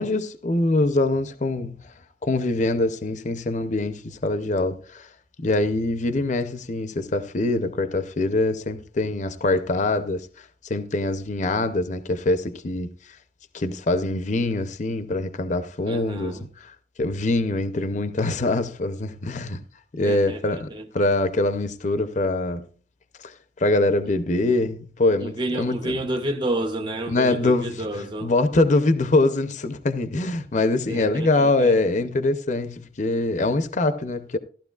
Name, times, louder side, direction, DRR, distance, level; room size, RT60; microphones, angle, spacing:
voice 1, 0.0-1.8 2.2-5.1 5.4-12.9 13.5-19.6 19.9-20.7 20.9-22.7 23.2-25.9 27.1-27.8 28.2-34.4, left 2 dB, 40° left, 0.6 m, -24 dB
voice 2, 15.9-16.5 20.0-20.9 24.0-24.1 25.2-28.3 30.9-31.8, right 1 dB, 25° right, 0.6 m, -30 dB
14.5 x 12.0 x 2.4 m
head